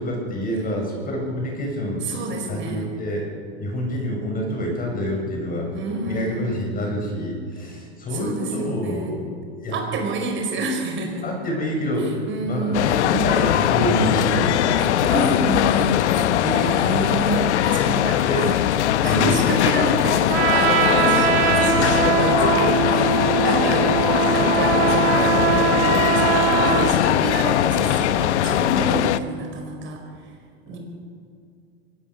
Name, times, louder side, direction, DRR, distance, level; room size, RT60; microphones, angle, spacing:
voice 1, 0.0-2.0 2.5-3.3 3.6-5.7 6.0-9.3 9.6-9.8 11.2-14.7 18.2-18.5 19.0-19.3 30.7-30.8, equal, 25° left, 0 dB, 7.5 m, -27 dB
voice 2, 2.0-2.9 5.7-6.6 8.1-9.1 9.7-11.2 12.0-12.9 14.7-18.2 19.0-30.0 30.7-30.8, right 2 dB, 35° right, 2 dB, 5.2 m, -28 dB
sound 1, 12.7-29.2, left 11 dB, 85° left, 1.0 m, -20 dB
Trumpet, 20.3-26.9, right 11 dB, 80° right, 3.2 m, -21 dB
23.0 x 18.5 x 6.7 m, 2.5 s
supercardioid pair, 120°, 33 cm